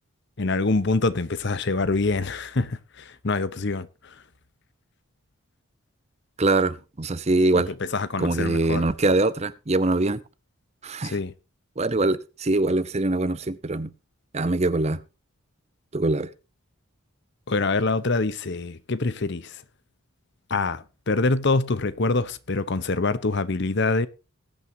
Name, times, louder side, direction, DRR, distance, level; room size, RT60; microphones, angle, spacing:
voice 1, 0.4-4.2 7.5-8.8 11.0-11.3 17.5-19.6 20.5-24.1, left 3 dB, 55° left, 0.8 m, -25 dB
voice 2, 6.4-7.7 8.2-10.2 10.8-11.1 11.8-13.9 14.3-15.0 15.9-16.3, right 2 dB, 30° right, 0.7 m, -23 dB
20.5 x 9.1 x 2.8 m
head